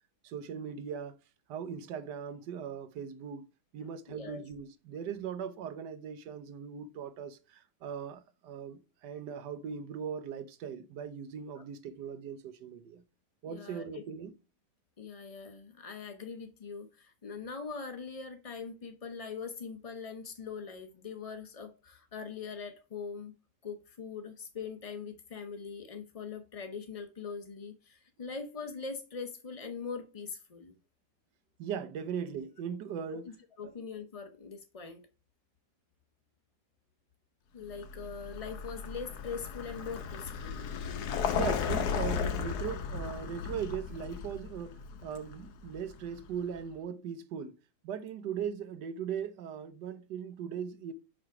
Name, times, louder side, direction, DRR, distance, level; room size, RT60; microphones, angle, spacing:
voice 1, 0.2-1.2 1.5-3.5 3.7-13.0 13.4-14.3 31.6-33.3 33.6-33.7 41.3-47.6 47.8-50.9, right 7 dB, 90° right, 1.3 m, -39 dB
voice 2, 4.1-4.4 11.6-11.7 13.5-14.0 15.0-23.3 23.6-30.7 33.1-33.2 33.6-35.0 37.5-40.7, left 5 dB, 50° left, 0.4 m, -42 dB
Vehicle, 37.7-46.5, left 7 dB, 75° left, 1.4 m, -35 dB
6.2 x 5.0 x 4.7 m
omnidirectional pair, 1.8 m